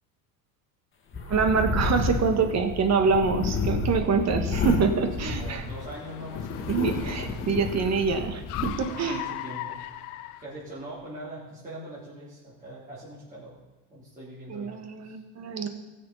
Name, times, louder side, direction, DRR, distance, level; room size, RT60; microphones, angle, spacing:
sound 1, 1.1-5.9 6.3-8.7, left 3 dB, 25° left, 2.0 m, -30 dB
Car, 1.2-11.1, left 14 dB, 85° left, 0.8 m, -42 dB
voice 1, 1.3-5.6 6.7-9.2 14.5-15.7, right 5 dB, 35° right, 7 dB, 1.5 m, -25 dB
voice 2, 3.9-4.2 4.7-4.9 5.2-7.5 8.3-8.5 8.9-9.8 10.4-13.5 13.9-14.7 15.0-15.2, right 1 dB, 20° right, -9 dB, 3.5 m, -42 dB
15.5 x 6.8 x 5.5 m, 1.1 s
supercardioid pair, 110°, 44 cm